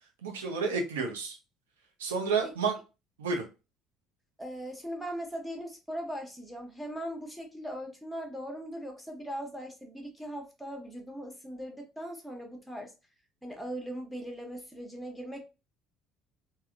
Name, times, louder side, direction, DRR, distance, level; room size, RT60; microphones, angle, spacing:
voice 1, 0.2-1.4 2.0-2.8 3.2-3.4, right 4 dB, 80° right, 2 dB, 0.8 m, -30 dB
voice 2, 4.4-12.9 13.4-15.5, equal, 5° left, 2 dB, 1.1 m, -39 dB
3.4 x 2.2 x 2.4 m, 0.29 s
figure-of-eight pair, 60°, 0 cm